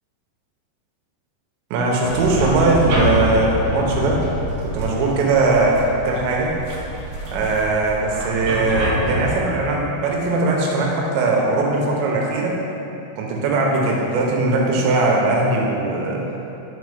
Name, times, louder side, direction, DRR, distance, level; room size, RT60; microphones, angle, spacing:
voice 1, 1.7-4.2 4.6-6.6 7.3-12.6 13.2-16.2, right 2 dB, 90° right, -2 dB, 3.2 m, -20 dB
sound 1, 2.0-9.4, equal, 65° right, 2.3 m, -26 dB
9.6 x 4.4 x 4.9 m, 3.0 s
omnidirectional pair, 5.1 m